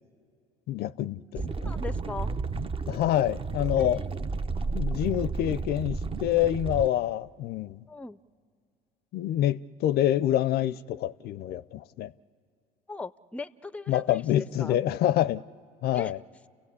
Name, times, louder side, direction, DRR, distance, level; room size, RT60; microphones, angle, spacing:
voice 1, 0.7-1.5 2.9-4.1 4.7-7.8 9.1-12.1 13.9-15.4 15.8-16.2, left 12 dB, 60° left, 0.5 m, -26 dB
sound 1, 1.4-6.9, right 4 dB, 30° right, 0.7 m, -32 dB
voice 2, 1.6-2.3 3.8-4.1 7.9-8.2 12.9-14.2 14.6-14.8 15.9-16.1, left 3 dB, 5° left, 0.5 m, -39 dB
30.0 x 16.0 x 8.3 m
hypercardioid pair, 75°, 18 cm